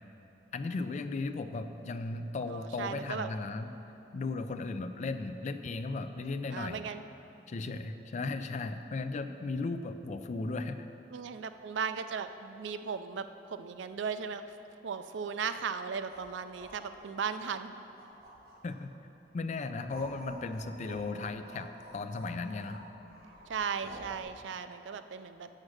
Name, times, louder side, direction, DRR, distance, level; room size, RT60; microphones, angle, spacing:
voice 1, 0.5-3.7 4.1-6.8 7.5-10.9 18.6-18.9 19.3-22.8, left 3 dB, 40° left, 9 dB, 0.4 m, -36 dB
voice 2, 2.4-3.3 6.5-7.0 11.1-14.4 14.8-17.8 23.5-25.5, right 6 dB, 85° right, 10 dB, 0.4 m, -37 dB
sound 1, 15.9-18.9 19.4-24.2, right 1 dB, 60° right, 1.6 m, -50 dB
7.3 x 6.4 x 6.4 m, 2.9 s
head